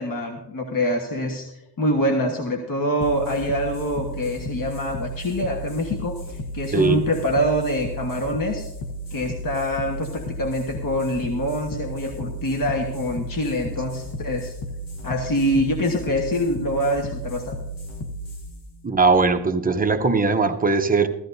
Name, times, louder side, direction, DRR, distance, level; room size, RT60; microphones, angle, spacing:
voice 1, 0.0-1.5 1.8-8.7 9.1-14.5 15.0-17.6, equal, 50° left, 2 dB, 1.4 m, -25 dB
sound 1, 3.0-20.0, equal, 80° left, 1.3 m, -34 dB
voice 2, 6.7-7.0 18.8-21.1, right 4 dB, 20° right, 5 dB, 0.7 m, -19 dB
15.5 x 13.5 x 2.7 m, 0.91 s
wide cardioid pair, 135°, 41 cm